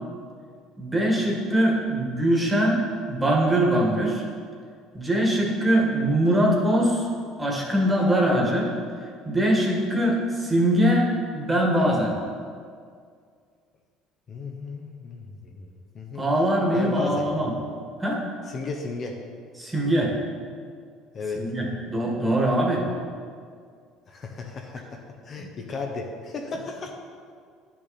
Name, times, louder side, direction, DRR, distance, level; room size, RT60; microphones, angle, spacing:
voice 1, 0.8-4.2 4.9-7.1 7.4-8.7 9.3-11.1 11.3-12.1 16.2-17.5 18.0-18.2 19.6-20.1 21.4-22.8, right 1 dB, 15° right, -1 dB, 1.8 m, -22 dB
voice 2, 14.3-15.7 15.9-16.2 16.7-17.4 18.5-19.2 21.1-21.4 24.1-26.9, left 4 dB, 40° left, 2 dB, 0.9 m, -35 dB
10.5 x 6.1 x 4.2 m, 2.1 s
cardioid pair, 110°, 0 cm